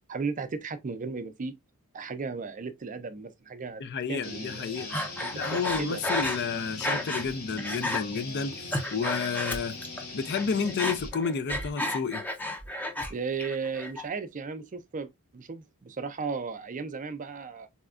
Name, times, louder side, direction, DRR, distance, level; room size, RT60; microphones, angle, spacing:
voice 1, 0.1-1.6 1.9-3.8 4.1-4.9 5.2-6.0 13.1-17.7, right 4 dB, 35° right, 0.5 m, -35 dB
voice 2, 3.8-5.0 5.3-8.6 8.9-9.8 10.1-12.2, left 5 dB, 50° left, 0.4 m, -31 dB
sound 1, 4.2-11.1, left 3 dB, 75° left, 1.6 m, -41 dB
Breathing, 4.9-7.3 7.6-8.0 8.5-10.0 10.3-13.1 13.4-14.0, left 1 dB, 10° left, 0.6 m, -32 dB
4.2 x 2.3 x 2.4 m
head